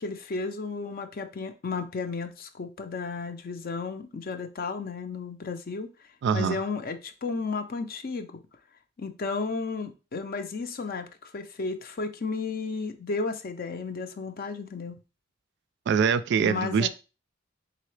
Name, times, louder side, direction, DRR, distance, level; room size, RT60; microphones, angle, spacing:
voice 1, 0.0-5.9 6.3-8.4 9.0-15.0 16.4-16.9, left 4 dB, 50° left, 0.5 m, -33 dB
voice 2, 6.2-6.6 15.9-16.9, right 6 dB, 60° right, 0.3 m, -24 dB
3.8 x 3.8 x 3.2 m
head